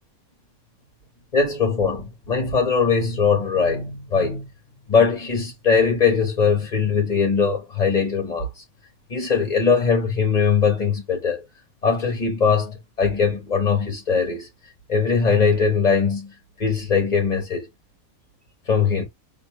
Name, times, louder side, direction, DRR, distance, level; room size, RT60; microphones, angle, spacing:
voice 1, 1.3-4.5 4.9-8.5 9.1-11.4 11.8-14.5 14.9-16.3 16.6-17.7 18.7-19.1, left 5 dB, 30° left, 2.0 m, -21 dB
7.0 x 3.4 x 2.2 m
omnidirectional pair, 1.5 m